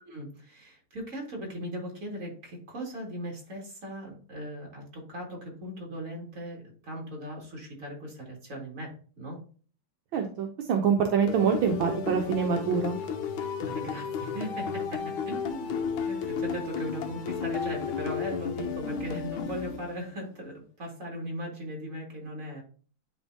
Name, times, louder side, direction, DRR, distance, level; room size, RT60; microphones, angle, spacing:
voice 1, 0.0-9.4 13.6-22.6, equal, 40° right, 0 dB, 2.7 m, -38 dB
voice 2, 10.1-13.0, right 6 dB, 75° right, 3 dB, 1.6 m, -25 dB
sound 1, 11.3-20.2, left 6 dB, 85° left, 1.7 m, -33 dB
11.0 x 3.6 x 2.7 m, 0.41 s
omnidirectional pair, 2.2 m